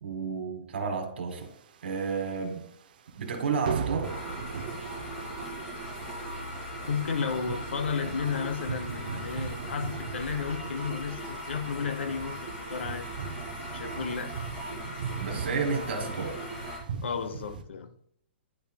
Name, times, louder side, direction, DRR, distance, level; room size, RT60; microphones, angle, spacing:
voice 1, 0.0-1.5 1.8-2.7 3.1-4.1 15.2-16.4, right 5 dB, 75° right, 1.6 m, -31 dB
sound 1, 1.4-2.4 2.7-2.9 3.2-3.4 3.6-17.6, right 6 dB, 50° right, 0.6 m, -39 dB
sound 2, 4.0-16.8, equal, 15° left, 2.1 m, -39 dB
voice 2, 6.9-13.1 13.7-14.3 17.0-17.9, left 6 dB, 85° left, 0.8 m, -33 dB
10.0 x 5.5 x 2.3 m
hypercardioid pair, 180°, 6 cm